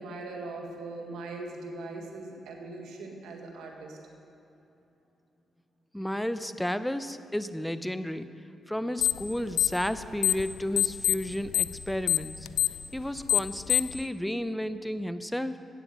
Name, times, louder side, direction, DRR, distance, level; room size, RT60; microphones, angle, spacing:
voice 1, 0.0-4.0, right 2 dB, 80° right, 2 dB, 1.4 m, -40 dB
voice 2, 5.9-8.3 8.7-12.5 12.9-15.6, equal, 5° left, 12 dB, 0.7 m, -32 dB
sound 1, 9.0-9.3 9.5-10.5 10.8-14.0, left 14 dB, 90° left, 0.3 m, -25 dB
14.0 x 9.0 x 5.3 m, 2.9 s
supercardioid pair, 55°, 0 cm